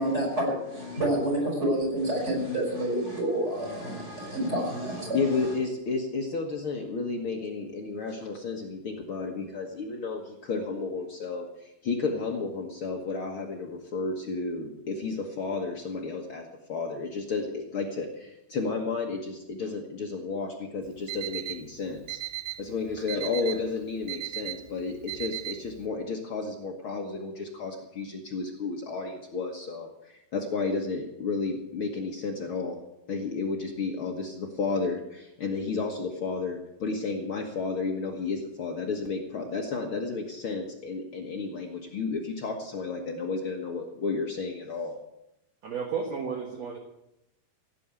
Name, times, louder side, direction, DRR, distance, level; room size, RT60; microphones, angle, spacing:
voice 1, 0.0-5.5, right 1 dB, 15° right, -2 dB, 6.2 m, -28 dB
voice 2, 5.1-22.2 22.6-32.8 33.1-45.0, left 4 dB, 90° left, 1 dB, 1.1 m, -32 dB
Alarm, 20.8-25.9, right 16 dB, 80° right, 1.9 m, -37 dB
voice 3, 45.6-46.8, right 6 dB, 55° right, 3 dB, 2.1 m, -32 dB
16.5 x 9.3 x 8.3 m, 0.85 s
omnidirectional pair, 4.8 m